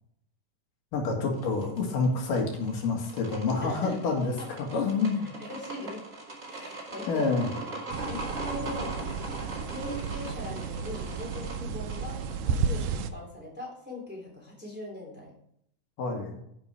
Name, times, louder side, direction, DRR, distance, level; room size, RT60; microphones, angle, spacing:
voice 1, 0.9-4.3 4.7-5.3 7.1-7.5 16.0-16.4, left 4 dB, 85° left, 1 dB, 3.6 m, -28 dB
sound 1, 1.3-12.5, right 2 dB, 20° right, 2.0 m, -41 dB
voice 2, 3.6-4.1 4.4-4.5 5.4-6.0 6.5-7.7 8.1-9.0 9.7-12.2 12.4-15.3, left 1 dB, 5° right, -1 dB, 2.9 m, -40 dB
sound 2, 7.9-13.1, right 5 dB, 85° right, 2.3 m, -33 dB
10.0 x 6.9 x 4.8 m, 0.71 s
omnidirectional pair, 3.7 m